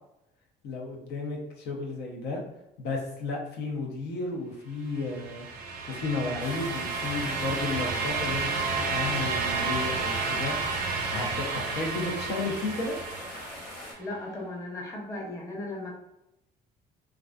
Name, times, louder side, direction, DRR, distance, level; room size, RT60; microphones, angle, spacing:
voice 1, 0.6-2.4 2.8-5.5 5.9-10.6 11.1-13.0, left 3 dB, 75° left, -1 dB, 0.6 m, -33 dB
sound 1, 5.0-13.9, right 4 dB, 60° right, 0.5 m, -31 dB
sound 2, 6.4-13.9, left 1 dB, 60° left, 1.2 m, -42 dB
voice 2, 14.0-15.9, left 2 dB, 20° left, -1 dB, 0.6 m, -36 dB
2.4 x 2.3 x 2.2 m, 0.86 s
cardioid pair, 110°, 17 cm